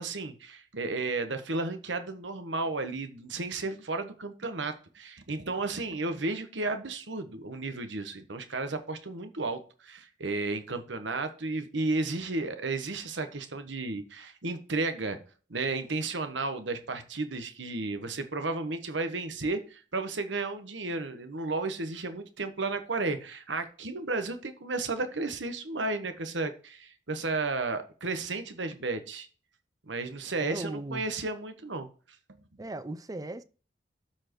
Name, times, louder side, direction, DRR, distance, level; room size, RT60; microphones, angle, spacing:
voice 1, 0.0-15.2 15.5-29.3 29.9-31.9 32.6-32.7, right 3 dB, 75° right, 1.2 m, -33 dB
voice 2, 30.4-31.1 32.6-33.4, right 2 dB, 20° right, 0.4 m, -37 dB
13.0 x 4.5 x 3.0 m
head